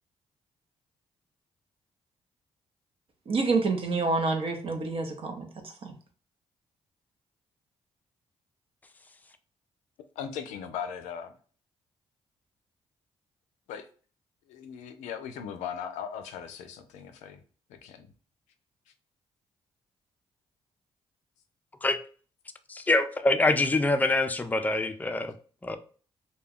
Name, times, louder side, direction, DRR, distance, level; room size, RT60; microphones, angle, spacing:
voice 1, 3.3-5.9, right 3 dB, 50° right, 0.7 m, -28 dB
voice 2, 10.2-11.3 13.7-13.9 14.5-17.4 17.7-18.1, left 8 dB, 85° left, 0.4 m, -38 dB
voice 3, 22.7-25.3 25.6-25.8, left 2 dB, 15° left, 0.4 m, -25 dB
2.3 x 2.2 x 3.4 m
supercardioid pair, 55°, 12 cm